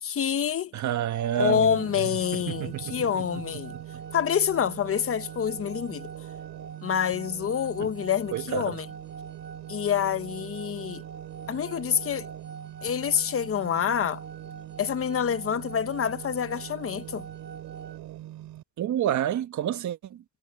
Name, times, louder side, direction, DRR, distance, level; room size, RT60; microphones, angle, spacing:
voice 1, 0.0-0.7 1.4-3.7 4.1-6.1 6.8-8.9 9.7-11.0 11.5-12.3 12.8-14.2 14.8-17.3, left 8 dB, 50° left, 1.0 m, -27 dB
voice 2, 0.7-3.2 3.5-3.6 3.9-4.0 7.8-7.9 8.3-8.8 18.8-20.2, right 11 dB, 70° right, 1.6 m, -30 dB
sound 1, 0.8-18.0, right 4 dB, 35° right, 1.6 m, -46 dB
sound 2, 1.4-18.6, right 14 dB, 85° right, 4.8 m, -42 dB
cardioid pair, 90°, 30 cm